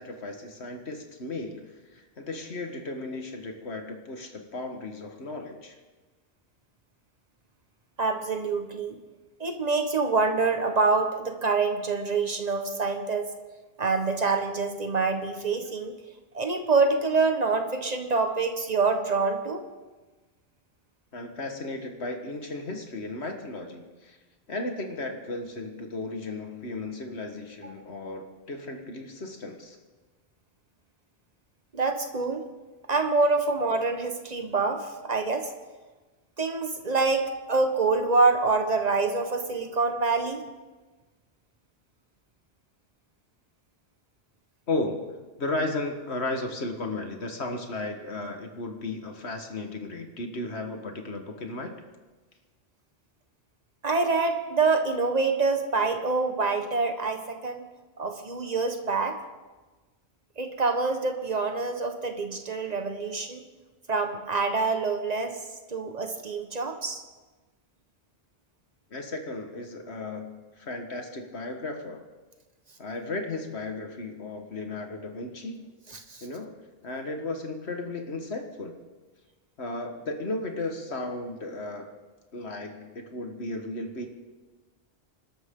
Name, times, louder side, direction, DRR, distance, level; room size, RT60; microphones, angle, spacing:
voice 1, 0.0-5.8 21.1-24.2 24.5-29.8 44.7-51.8 68.9-72.0 72.8-75.7 76.2-76.6 76.8-78.8 79.6-81.9 82.3-84.1, left 2 dB, 80° left, 4 dB, 1.9 m, -35 dB
voice 2, 8.0-9.0 9.4-13.3 13.8-15.9 16.3-19.6 31.7-32.4 32.9-35.5 36.4-40.4 53.8-57.6 58.0-59.2 60.4-63.4 63.9-65.4 65.7-67.0 75.9-76.2, right 4 dB, 40° right, 5 dB, 1.5 m, -26 dB
27.5 x 12.5 x 3.8 m, 1.3 s
omnidirectional pair, 1.1 m